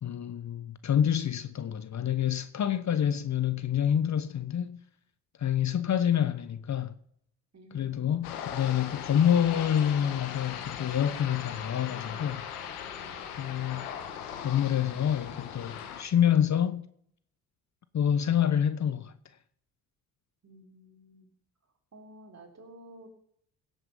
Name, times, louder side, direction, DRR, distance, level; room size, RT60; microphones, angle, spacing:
voice 1, 0.0-4.8 5.4-6.9 7.7-12.4 13.4-13.9 14.4-16.9 17.9-19.1, left 9 dB, 40° left, 0.9 m, -27 dB
voice 2, 7.5-8.5 13.0-13.8 20.4-21.3 21.9-23.1, right 1 dB, 35° right, 3.6 m, -53 dB
sound 1, 8.2-16.0, left 8 dB, 85° left, 1.4 m, -39 dB
16.5 x 8.1 x 5.5 m
hypercardioid pair, 50°, 43 cm